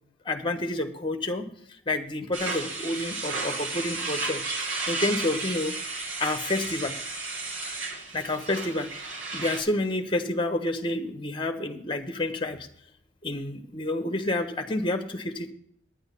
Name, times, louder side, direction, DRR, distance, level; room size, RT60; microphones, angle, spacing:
voice 1, 0.2-1.5 1.9-5.7 6.2-6.9 8.1-8.9 9.3-12.7 13.2-15.5, left 2 dB, 25° left, 7 dB, 1.1 m, -29 dB
sound 1, 2.3-9.6, right 3 dB, 80° right, 2.5 m, -33 dB
10.5 x 8.9 x 5.5 m, 0.69 s
head